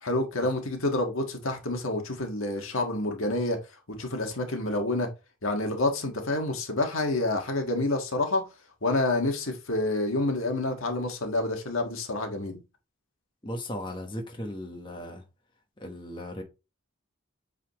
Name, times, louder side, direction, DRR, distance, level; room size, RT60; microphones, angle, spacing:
voice 1, 0.0-3.6 3.9-5.1 5.4-8.5 8.8-12.6, left 2 dB, 80° left, 1.6 m, -28 dB
voice 2, 13.4-15.2 15.8-16.4, left 1 dB, 25° left, 1.2 m, -36 dB
8.2 x 4.1 x 3.0 m
head